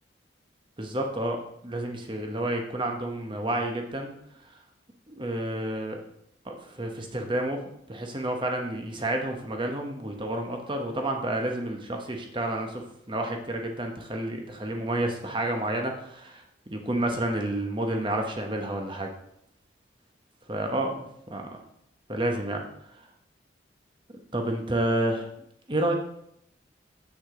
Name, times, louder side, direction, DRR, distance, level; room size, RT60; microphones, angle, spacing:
voice 1, 0.8-4.1 5.1-6.0 6.4-7.6 7.9-19.1 20.5-21.4 22.1-22.6 24.3-25.3 25.7-25.9, right 1 dB, 25° right, 3 dB, 1.0 m, -30 dB
8.0 x 6.0 x 3.8 m, 0.74 s
head